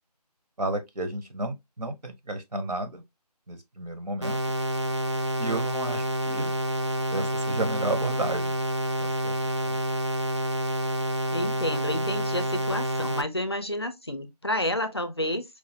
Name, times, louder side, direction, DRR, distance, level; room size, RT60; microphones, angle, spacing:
voice 1, 0.6-3.0 3.5-4.4 5.4-6.5 7.1-8.5 9.0-9.3 9.6-9.8, right 2 dB, 75° right, 1.0 m, -32 dB
sound 1, 4.2-13.2, right 1 dB, 45° right, 0.5 m, -28 dB
voice 2, 11.3-15.4, left 1 dB, 40° left, 0.5 m, -30 dB
4.6 x 2.5 x 2.7 m
figure-of-eight pair, 180°, 21 cm